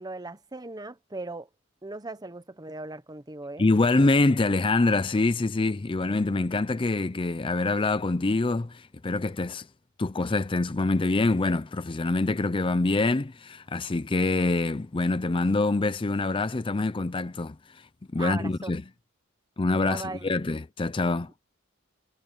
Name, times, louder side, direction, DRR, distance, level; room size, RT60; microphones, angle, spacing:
voice 1, 0.0-1.5 1.8-3.7 18.2-18.7 19.8-20.3, right 2 dB, 20° right, 1.0 m, -38 dB
voice 2, 3.6-9.7 10.0-18.8 19.6-21.3, left 2 dB, 25° left, 0.5 m, -25 dB
head